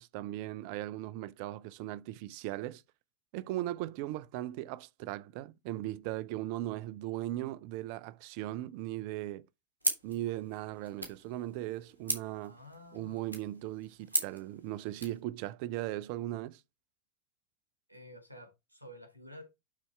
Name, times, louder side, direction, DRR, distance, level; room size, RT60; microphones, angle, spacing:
voice 1, 0.0-2.8 3.3-9.5 10.0-12.6 12.9-16.6, right 15 dB, 45° right, 0.6 m, -38 dB
sound 1, 9.8-15.2, right 1 dB, 85° right, 2.3 m, -38 dB
voice 2, 12.4-13.4 17.9-19.4, left 1 dB, 90° left, 2.2 m, -51 dB
11.5 x 4.2 x 3.4 m
figure-of-eight pair, 90°, 0 cm